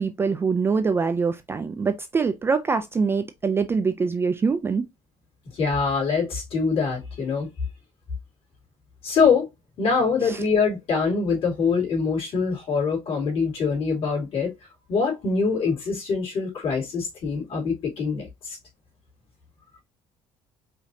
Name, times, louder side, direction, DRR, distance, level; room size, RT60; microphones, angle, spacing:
voice 1, 0.0-4.9 10.2-10.4, right 5 dB, 20° right, 0.3 m, -24 dB
voice 2, 5.5-7.5 9.0-9.5 9.8-14.5 14.9-18.6, left 5 dB, 50° left, 2.7 m, -24 dB
5.0 x 2.8 x 2.6 m
cardioid pair, 155°, 12 cm